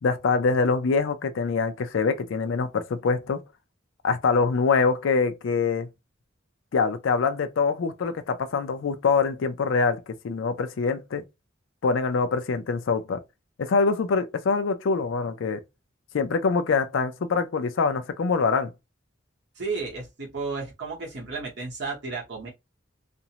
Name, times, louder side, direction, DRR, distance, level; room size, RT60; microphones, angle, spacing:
voice 1, 0.0-3.4 4.0-5.9 6.7-11.2 11.8-13.2 13.6-15.6 16.1-18.7, left 4 dB, 70° left, 0.4 m, -24 dB
voice 2, 19.6-22.5, right 4 dB, 60° right, 0.9 m, -33 dB
2.5 x 2.0 x 2.8 m
head